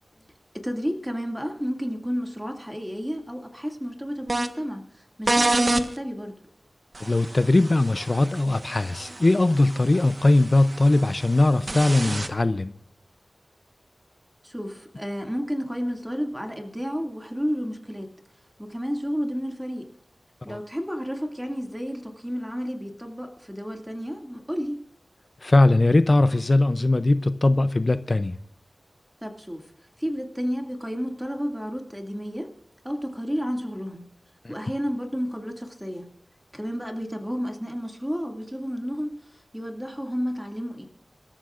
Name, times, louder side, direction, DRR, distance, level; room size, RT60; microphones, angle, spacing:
voice 1, 0.5-6.4 14.4-18.1 18.6-19.9 20.4-24.8 29.2-29.7 30.0-32.5 32.8-34.0 34.5-36.1 36.5-40.9, equal, 5° right, 3 dB, 2.2 m, -31 dB
sound 1, 4.3-4.5 5.3-5.9 6.9-12.3, right 2 dB, 40° right, 1.2 m, -28 dB
voice 2, 7.0-12.7 20.5-20.6 25.4-28.4 34.4-34.5, left 2 dB, 45° left, 12 dB, 0.5 m, -20 dB
26.0 x 13.5 x 2.5 m, 0.74 s
wide cardioid pair, 75°, 0 cm